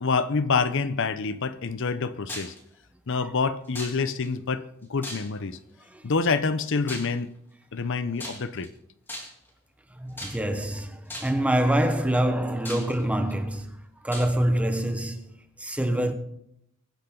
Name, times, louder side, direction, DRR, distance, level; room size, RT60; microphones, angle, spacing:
voice 1, 0.0-2.5 3.1-4.6 4.9-5.6 6.0-7.3 7.7-8.7, left 4 dB, 60° left, 0.7 m, -27 dB
sound 1, 2.3-2.6 3.8-4.3 5.0-5.6 6.9-7.2 8.2-8.7 9.1-9.5 10.2-10.6 11.1-11.5 12.1-12.2 12.7-13.3 14.1-14.3, left 1 dB, 10° left, 2.9 m, -38 dB
voice 2, 10.0-13.7 14.0-15.2 15.6-16.1, right 1 dB, 5° right, 1.1 m, -25 dB
23.0 x 10.0 x 3.8 m
head